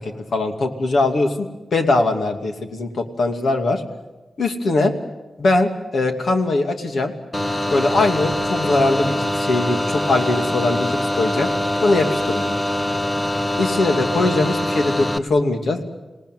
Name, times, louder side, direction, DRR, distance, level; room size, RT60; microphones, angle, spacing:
voice 1, 0.0-3.8 4.4-4.9 5.4-7.1 7.7-11.5 11.8-12.4 13.6-15.8, left 2 dB, 70° left, 4 dB, 2.6 m, -21 dB
sound 1, 7.3-15.2, left 1 dB, 15° left, 0.9 m, -23 dB
27.0 x 18.5 x 9.3 m, 1.1 s
wide cardioid pair, 125°, 0 cm